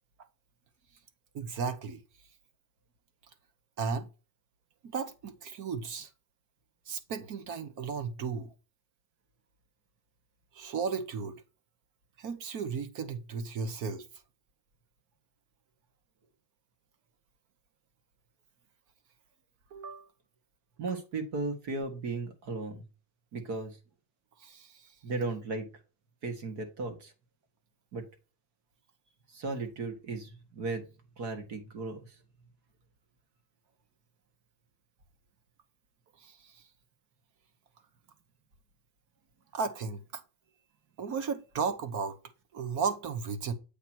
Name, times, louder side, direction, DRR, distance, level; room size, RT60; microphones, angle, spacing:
voice 1, 1.3-2.0 3.8-4.1 4.8-6.1 6.9-8.5 10.5-11.4 12.2-14.1 19.7-20.1 24.4-24.9 36.2-36.6 39.5-40.2 41.0-42.2 42.5-43.5, right 5 dB, 40° right, 0.9 m, -35 dB
voice 2, 20.8-22.9 23.3-23.8 25.0-25.7 26.2-27.1 27.9-28.1 29.3-30.9 31.2-32.1, right 3 dB, 55° right, 1.7 m, -36 dB
8.2 x 2.9 x 6.0 m
cardioid pair, 170°, 49 cm